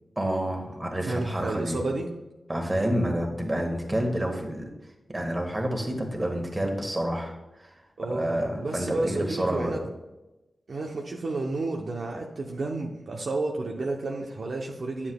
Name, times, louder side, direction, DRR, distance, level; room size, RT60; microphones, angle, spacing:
voice 1, 0.2-1.8 2.5-4.7 5.1-7.3 8.1-9.8, right 1 dB, 25° right, 2 dB, 1.6 m, -28 dB
voice 2, 1.0-2.1 8.0-9.8 10.7-15.1, right 2 dB, 70° right, 0 dB, 0.7 m, -31 dB
9.6 x 7.1 x 2.3 m, 1.0 s
cardioid pair, 50°, 0 cm